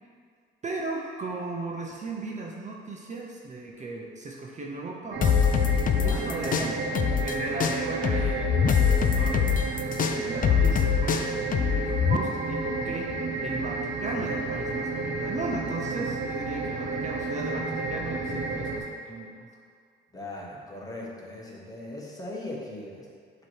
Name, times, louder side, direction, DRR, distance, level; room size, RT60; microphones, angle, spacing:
voice 1, 0.6-5.4 6.0-6.8 7.2-9.7 10.1-13.1 13.4-19.5, right 2 dB, 35° right, -2 dB, 0.8 m, -36 dB
sound 1, 5.1-18.8, right 3 dB, 65° right, 1.1 m, -31 dB
sound 2, 5.2-7.3 7.6-12.2, left 8 dB, 45° left, 0.4 m, -23 dB
voice 2, 6.0-7.2 20.1-23.1, left 1 dB, 20° left, -4 dB, 1.4 m, -39 dB
7.4 x 3.2 x 4.7 m, 2.2 s
cardioid pair, 90°, 20 cm